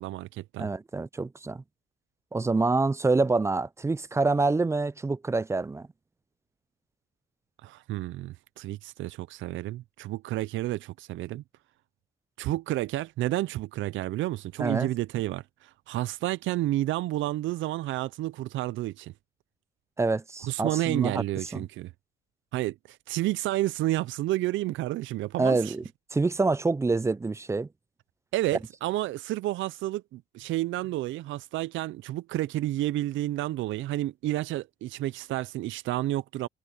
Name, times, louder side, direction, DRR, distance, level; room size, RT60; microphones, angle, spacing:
voice 1, 0.0-0.7 7.6-11.4 12.4-19.1 20.4-21.9 22.5-25.8 28.3-36.5, right 15 dB, 75° right, 0.5 m, -30 dB
voice 2, 0.6-1.6 2.3-5.9 14.6-14.9 20.0-21.1 21.5-21.6 25.4-25.8 26.1-27.7, right 3 dB, 15° right, 0.4 m, -26 dB
cardioid pair, 90°, 20 cm